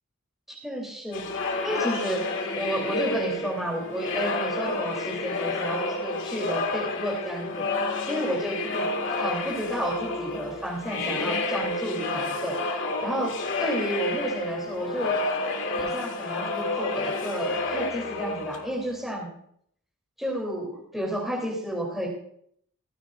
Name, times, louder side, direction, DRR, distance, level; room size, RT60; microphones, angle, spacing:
voice 1, 0.5-1.3 1.6-2.2 2.6-7.6 8.1-12.6 13.0-13.3 13.6-15.1 15.8-19.3 20.2-22.1, equal, ahead, -3 dB, 3.3 m, -31 dB
sound 1, 1.1-19.0, left 2 dB, 60° left, 2.1 m, -30 dB
17.5 x 15.5 x 2.6 m, 0.68 s
head